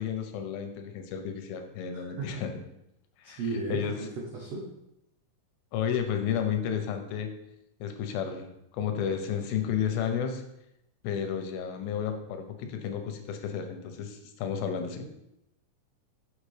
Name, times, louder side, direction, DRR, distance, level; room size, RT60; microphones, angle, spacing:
voice 1, 0.0-2.5 3.2-3.4 3.7-3.9 5.7-7.3 7.8-10.4 11.0-15.1, left 8 dB, 85° left, 5 dB, 2.6 m, -32 dB
voice 2, 1.9-2.4 3.2-4.6, right 3 dB, 80° right, -2 dB, 1.4 m, -35 dB
6.5 x 6.1 x 3.2 m, 0.83 s
omnidirectional pair, 4.2 m